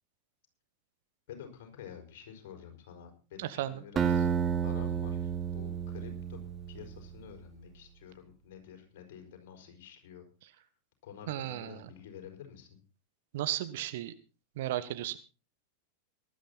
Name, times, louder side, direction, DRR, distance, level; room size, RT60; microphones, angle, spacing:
voice 1, 1.3-4.3 4.6-6.4 6.7-10.3 11.0-12.8, left 8 dB, 50° left, 5 dB, 5.4 m, -49 dB
voice 2, 3.4-3.8 11.3-11.9 13.3-14.1 14.5-15.2, right 14 dB, 55° right, 12 dB, 1.4 m, -35 dB
Acoustic guitar, 4.0-7.0, right 7 dB, 25° right, 1.8 m, -31 dB
19.0 x 12.0 x 4.2 m, 0.34 s
figure-of-eight pair, 90°, 0 cm